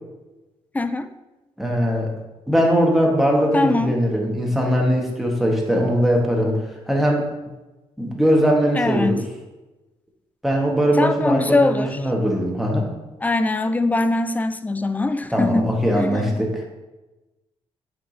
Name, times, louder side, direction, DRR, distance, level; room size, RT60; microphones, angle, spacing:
voice 1, 0.7-1.1 3.5-4.0 8.7-9.2 11.0-12.0 13.2-15.7 16.0-16.4, left 2 dB, 15° left, 11 dB, 0.4 m, -22 dB
voice 2, 1.6-2.1 2.5-6.6 6.9-7.3 8.0-9.2 10.4-12.9 15.3-16.6, equal, ahead, -1 dB, 1.4 m, -20 dB
7.2 x 4.7 x 2.8 m, 1.1 s
cardioid pair, 85°, 12 cm